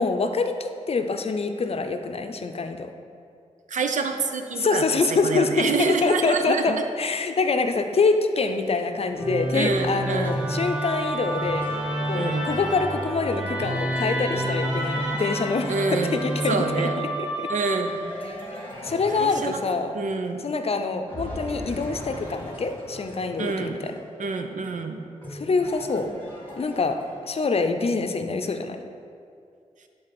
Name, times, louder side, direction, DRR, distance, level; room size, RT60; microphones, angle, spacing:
voice 1, 0.0-2.9 4.6-11.7 12.1-17.5 18.3-18.4 18.8-20.0 20.4-24.0 25.3-26.1 26.6-27.0 27.2-28.8, left 4 dB, 50° left, 7 dB, 0.6 m, -25 dB
voice 2, 3.7-4.8 5.1-6.8 9.5-10.4 12.1-12.5 15.7-16.2 16.5-16.9 17.5-17.9 19.1-19.6 19.9-20.4 23.4-23.8 24.2-25.0, right 4 dB, 75° right, 6 dB, 0.7 m, -27 dB
sound 1, 9.1-16.5 17.8-20.7 21.1-27.5, left 1 dB, 15° left, 2.1 m, -41 dB
Musical instrument, 9.2-18.4, equal, 5° right, 1.4 m, -28 dB
11.5 x 3.9 x 6.0 m, 2.4 s
cardioid pair, 70°, 13 cm